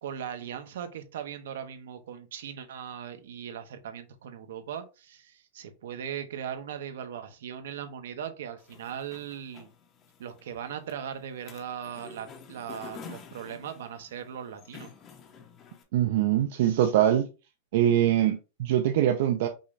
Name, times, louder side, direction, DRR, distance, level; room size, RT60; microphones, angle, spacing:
voice 1, 0.0-9.7 10.2-14.9, right 8 dB, 75° right, 0.9 m, -39 dB
sound 1, 8.6-15.8, left 6 dB, 20° left, 0.7 m, -49 dB
voice 2, 15.9-17.3 17.7-19.5, right 11 dB, 50° right, 0.5 m, -23 dB
5.4 x 2.6 x 3.2 m
supercardioid pair, 175°, 0 cm